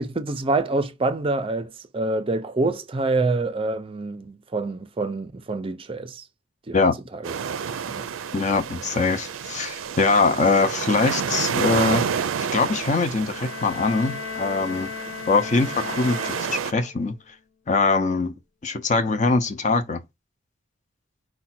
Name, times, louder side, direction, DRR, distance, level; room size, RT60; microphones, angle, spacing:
voice 1, 0.0-6.3 6.7-6.9 7.1-7.4 7.8-8.1, right 2 dB, 30° right, 0.5 m, -26 dB
sound 1, 7.2-16.7, right 7 dB, 85° right, 0.4 m, -30 dB
voice 2, 8.3-14.9 15.3-17.1 17.7-18.3 18.6-20.0, left 3 dB, 35° left, 0.6 m, -22 dB
sound 2, 13.3-17.1, left 6 dB, 85° left, 0.7 m, -36 dB
4.8 x 2.2 x 4.2 m
head